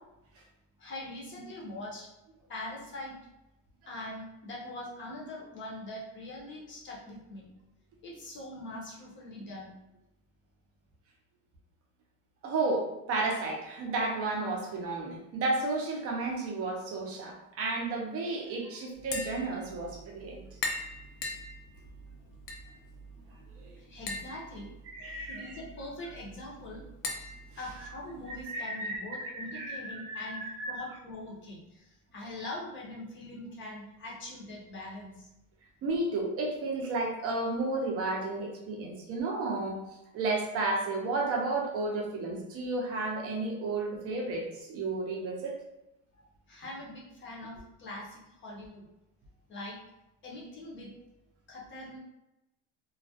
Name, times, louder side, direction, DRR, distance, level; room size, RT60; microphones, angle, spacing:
voice 1, 0.8-2.1 2.5-3.2 3.9-7.5 8.0-9.7 23.8-24.7 25.3-26.8 27.6-30.4 30.7-35.3 46.2-48.8 49.5-49.8 50.2-50.9 51.5-52.0, left 1 dB, 30° left, -3 dB, 0.6 m, -42 dB
voice 2, 12.4-20.4 23.6-23.7 24.9-25.6 28.4-30.9 35.8-39.8 40.1-45.6, right 2 dB, 35° right, 0 dB, 0.5 m, -32 dB
Tap, 18.9-28.4, left 2 dB, 85° left, 0.6 m, -42 dB
2.3 x 2.1 x 2.6 m, 0.92 s
cardioid pair, 150°, 41 cm